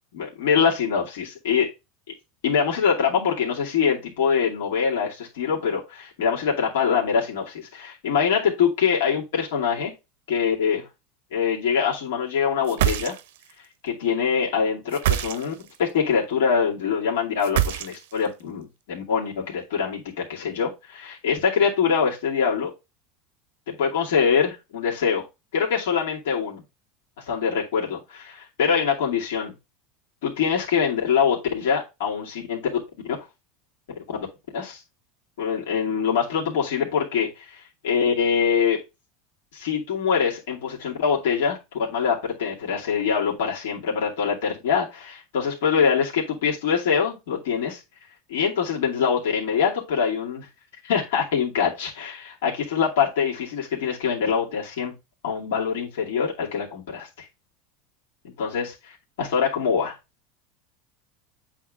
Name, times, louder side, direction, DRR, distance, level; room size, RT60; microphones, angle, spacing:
voice 1, 0.1-1.7 2.4-9.9 10.3-10.9 11.3-13.1 13.8-22.7 23.7-25.2 25.5-26.6 27.2-29.5 30.2-32.7 34.5-34.8 35.4-38.8 39.5-41.6 41.9-47.8 48.3-50.5 50.8-54.9 55.2-57.3 58.2-60.0, left 6 dB, 90° left, -3 dB, 2.4 m, -24 dB
sound 1, 12.6-13.5 14.9-15.8 17.4-18.3, right 12 dB, 85° right, 0.7 m, -25 dB
8.6 x 3.7 x 3.7 m, 0.24 s
supercardioid pair, 140°, 0 cm